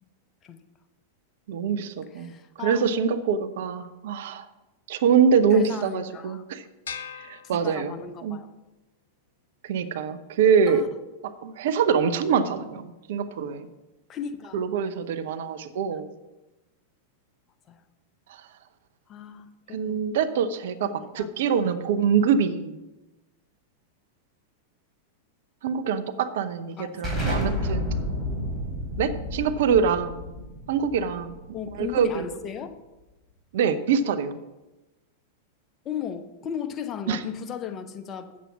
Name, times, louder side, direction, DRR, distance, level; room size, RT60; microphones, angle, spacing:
voice 1, 1.5-2.3 2.6-4.5 4.9-6.6 7.2-7.9 8.2-8.4 9.6-10.8 11.4-13.7 14.5-16.1 19.7-22.7 25.6-27.9 29.0-30.2 30.7-31.3 31.8-32.2 33.5-34.4 37.1-37.2, right 6 dB, 60° right, 10 dB, 0.7 m, -24 dB
voice 2, 2.1-2.9 5.5-6.4 7.4-8.5 10.7-10.9 14.1-14.6 17.7-17.8 19.1-20.0 20.8-21.3 26.8-27.5 30.8-30.9 31.5-32.8 35.8-38.4, left 8 dB, 30° left, 7 dB, 0.9 m, -36 dB
sound 1, 6.9-8.3, left 7 dB, 75° left, 0.7 m, -40 dB
Explosion, 27.0-32.4, left 1 dB, ahead, 4.1 m, -31 dB
8.3 x 7.4 x 6.0 m, 1.1 s
figure-of-eight pair, 95°, 0 cm